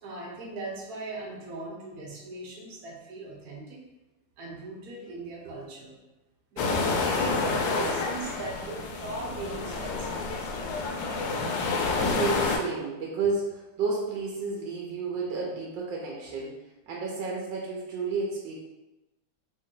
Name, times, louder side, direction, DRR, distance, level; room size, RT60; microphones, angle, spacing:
voice 1, 0.0-3.8 4.4-6.0 6.5-10.2, right 2 dB, 60° right, -2 dB, 1.1 m, -39 dB
sound 1, 6.6-12.6, left 4 dB, 75° left, 1.2 m, -29 dB
voice 2, 12.0-16.6 16.9-18.6, right 4 dB, 75° right, -3 dB, 1.3 m, -31 dB
3.3 x 2.7 x 3.7 m, 1.0 s
omnidirectional pair, 2.1 m